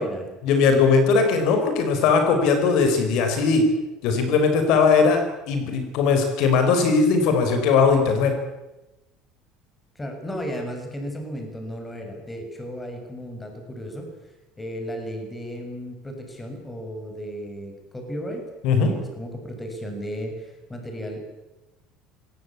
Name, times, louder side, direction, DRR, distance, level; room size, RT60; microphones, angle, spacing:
voice 1, 0.4-3.7 4.0-8.4 18.6-18.9, left 5 dB, 65° left, 6 dB, 5.1 m, -19 dB
voice 2, 9.9-14.1 14.6-18.5 18.9-21.2, equal, 10° left, 4 dB, 6.1 m, -34 dB
25.0 x 18.5 x 8.5 m, 1.0 s
cardioid pair, 135°, 0 cm